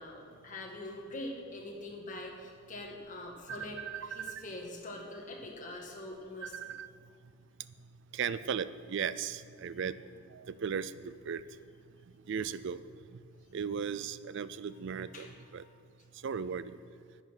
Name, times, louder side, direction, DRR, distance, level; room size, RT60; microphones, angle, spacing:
voice 1, 0.0-6.7 15.1-15.7, left 1 dB, 35° left, 0 dB, 1.7 m, -44 dB
voice 2, 3.8-4.4 6.4-6.9 8.1-11.4 12.3-12.8 13.5-15.6 16.2-16.8, right 7 dB, 55° right, 15 dB, 0.4 m, -37 dB
10.5 x 9.0 x 6.2 m, 2.1 s
head